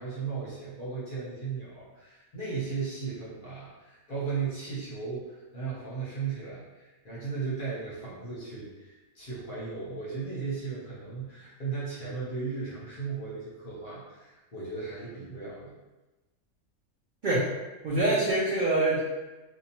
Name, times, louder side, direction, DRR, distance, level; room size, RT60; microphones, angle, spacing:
voice 1, 0.0-15.7, right 5 dB, 45° left, -7 dB, 0.7 m, -36 dB
voice 2, 17.8-19.0, right 2 dB, 80° right, -7 dB, 0.4 m, -25 dB
2.8 x 2.2 x 2.8 m, 1.1 s
omnidirectional pair, 1.5 m